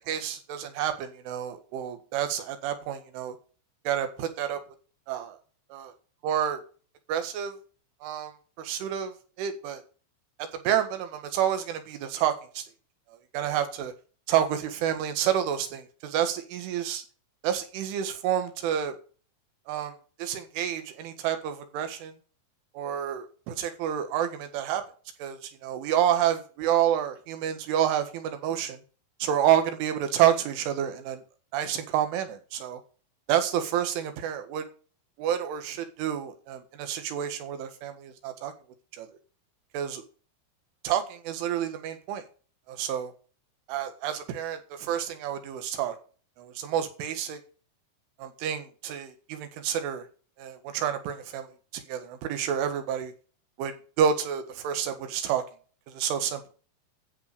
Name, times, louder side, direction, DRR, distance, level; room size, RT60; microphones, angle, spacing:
voice 1, 0.0-3.4 3.9-4.6 5.1-5.4 5.7-5.9 6.2-6.6 7.1-7.6 8.0-9.8 10.4-12.6 13.3-13.9 14.3-17.0 17.4-18.9 19.7-19.9 20.2-22.1 22.8-24.8 25.2-28.8 29.2-31.2 31.5-32.8 33.3-34.7 35.2-38.5 38.9-39.1 39.7-40.0 40.8-42.2 42.7-43.1 43.7-46.0 46.4-47.4 48.2-50.0 50.4-51.5 51.7-53.1 53.6-55.4 55.9-56.4, right 10 dB, 80° right, 8 dB, 4.1 m, -29 dB
11.5 x 7.1 x 6.7 m, 0.39 s
omnidirectional pair, 5.6 m